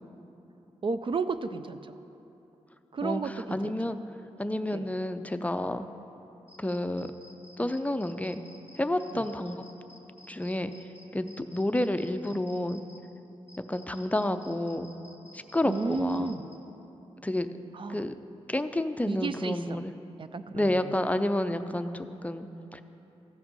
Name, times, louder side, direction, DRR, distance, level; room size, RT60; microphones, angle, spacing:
voice 1, 0.8-2.0 2.9-3.7 4.7-4.8 9.1-9.2 15.7-16.5 17.7-18.0 19.1-19.8 20.2-20.9, right 4 dB, 45° right, 11 dB, 0.4 m, -33 dB
voice 2, 3.0-4.0 4.4-5.9 6.6-7.1 7.6-8.4 8.8-9.6 10.3-10.7 11.1-12.8 13.6-14.9 15.3-16.4 17.2-17.5 17.9-18.1 18.5-19.9 20.5-22.8, left 1 dB, 10° left, 9 dB, 0.5 m, -30 dB
sound 1, 6.5-13.0 13.5-16.6, left 1 dB, 15° right, 1.3 m, -54 dB
14.5 x 5.9 x 5.3 m, 3.0 s
cardioid pair, 55°, 12 cm